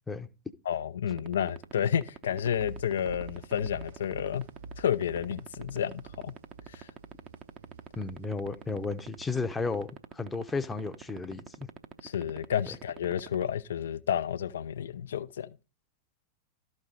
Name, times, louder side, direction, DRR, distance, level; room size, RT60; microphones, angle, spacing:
voice 1, 0.7-4.5 4.8-6.3 6.7-6.9 12.0-15.5, left 9 dB, 65° left, 0.5 m, -31 dB
sound 1, 1.1-13.4, right 10 dB, 35° right, 0.8 m, -42 dB
sound 2, 2.6-10.0, right 2 dB, 65° right, 1.0 m, -48 dB
voice 2, 8.0-9.9 10.1-11.7, left 4 dB, 10° left, 0.8 m, -33 dB
13.0 x 5.3 x 3.9 m
figure-of-eight pair, 90°, 0 cm